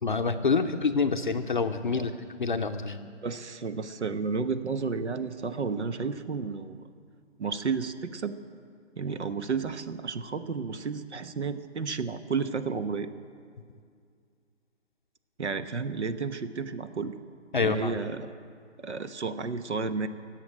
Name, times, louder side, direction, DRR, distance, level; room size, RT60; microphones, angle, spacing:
voice 1, 0.0-2.1 2.4-3.0 17.5-17.9, left 4 dB, 45° left, 7 dB, 0.6 m, -26 dB
voice 2, 3.2-6.9 7.4-8.3 9.0-13.1 15.4-17.2 17.6-18.3 18.8-20.1, right 5 dB, 65° right, 11 dB, 1.1 m, -32 dB
17.0 x 7.8 x 10.0 m, 2.2 s
figure-of-eight pair, 155°, 36 cm